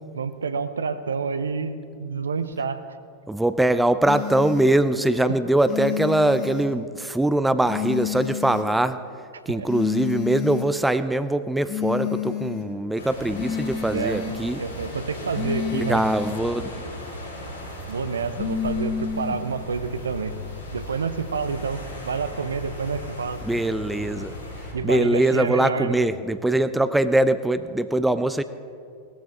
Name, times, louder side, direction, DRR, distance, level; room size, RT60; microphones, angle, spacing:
voice 1, 0.1-2.8 9.5-9.7 13.9-14.2 14.6-16.0 17.9-20.3 20.7-23.4 24.7-26.0, right 5 dB, 70° right, 12 dB, 0.7 m, -28 dB
voice 2, 3.3-9.0 9.5-14.6 15.7-16.7 23.4-24.3 24.8-28.4, right 1 dB, 5° right, 12 dB, 0.4 m, -22 dB
sound 1, 4.0-4.7 5.6-6.7 7.6-8.7 9.6-10.7 11.7-12.7 13.3-14.4 15.3-16.4 18.3-19.4, left 8 dB, 35° left, 1.7 m, -29 dB
sound 2, 13.0-24.7, left 1 dB, 90° left, 4.2 m, -37 dB
17.5 x 13.5 x 3.5 m, 2.2 s
figure-of-eight pair, 90°, 0 cm